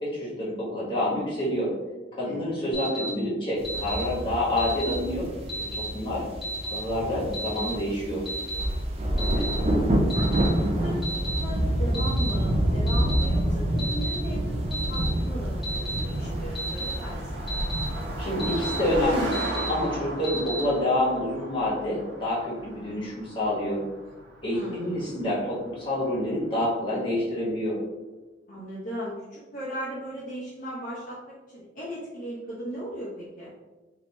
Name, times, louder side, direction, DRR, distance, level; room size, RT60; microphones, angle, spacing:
voice 1, 0.0-1.7 2.1-5.3 5.7-6.2 6.7-8.2 18.2-19.3 19.7-23.8 24.4-27.7, left 1 dB, 30° left, -8 dB, 1.3 m, -27 dB
voice 2, 2.2-2.7 9.2-9.5 10.1-11.1 11.3-17.4 24.5-25.1 28.5-31.2 31.5-33.5, equal, 45° left, -9 dB, 0.8 m, -37 dB
Alarm, 2.7-3.1 3.6-4.0 4.6-4.9 5.5-5.8 6.4-6.8 7.3-7.7 8.3-8.6 9.2-9.5 10.1-10.5 11.0-11.4 11.9-12.3 12.9-13.2 13.8-14.1 14.7-15.1 15.6-16.0 16.5-16.9 17.5-17.8 18.4-18.8 19.3-19.7 20.2-20.6, right 1 dB, ahead, 1.2 m, -33 dB
sound 1, 3.6-19.1, right 1 dB, 35° right, 0.4 m, -28 dB
Car passing by, 12.6-26.3, right 1 dB, 85° right, 1.0 m, -38 dB
3.3 x 2.8 x 3.0 m, 1.2 s
head